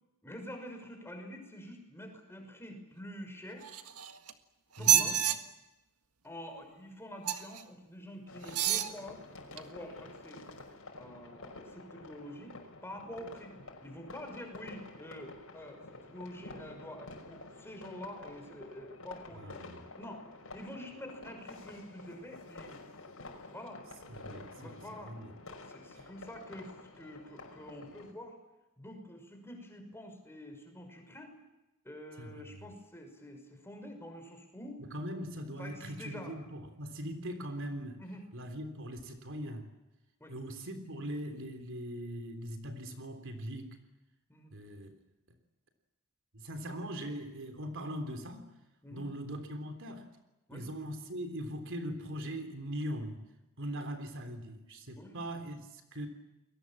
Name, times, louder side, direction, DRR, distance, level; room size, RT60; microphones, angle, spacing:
voice 1, 0.2-3.7 4.8-5.2 6.2-9.2 9.5-10.4 11.0-12.5 12.8-13.5 13.8-19.7 20.0-20.3 20.5-22.8 23.5-23.8 24.5-25.2 25.6-28.4 28.8-31.3 31.8-34.8 35.6-36.4 38.0-38.2 40.2-40.3 44.3-44.6 48.8-49.0 50.5-50.6 55.0-55.2, left 1 dB, 10° left, 4 dB, 5.7 m, -47 dB
sound 1, 3.6-4.3 4.8-5.4 7.2-7.6 8.4-8.9 9.6-9.7, right 10 dB, 80° right, 1.7 m, -28 dB
voice 2, 4.8-5.2 19.3-19.9 24.1-24.7 25.0-25.4 32.2-32.7 34.9-38.0 38.3-39.7 40.3-43.8 44.5-45.0 46.3-48.5 48.9-50.1 50.5-53.3 53.6-56.1, equal, 60° right, 7 dB, 3.6 m, -41 dB
sound 2, 8.3-28.1, left 2 dB, 65° left, 5.8 m, -50 dB
29.5 x 22.5 x 7.5 m, 0.97 s
head